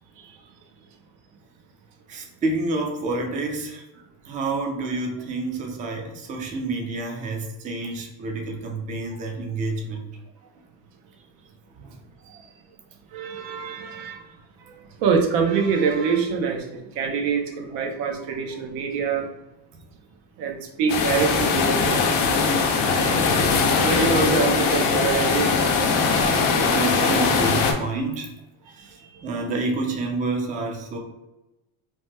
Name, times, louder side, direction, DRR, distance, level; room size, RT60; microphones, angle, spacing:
voice 1, 2.1-3.8 4.3-10.1 11.7-12.0 26.6-28.3 28.7-31.0, right 2 dB, 20° right, 2 dB, 0.3 m, -28 dB
voice 2, 13.1-14.3 14.7-19.3 20.4-22.2 23.8-25.7 28.8-29.1, right 5 dB, 90° right, 3 dB, 0.7 m, -25 dB
sound 1, 20.9-27.7, left 4 dB, 75° left, 0.7 m, -21 dB
3.0 x 2.1 x 3.2 m, 1.0 s
cardioid pair, 145°, 40 cm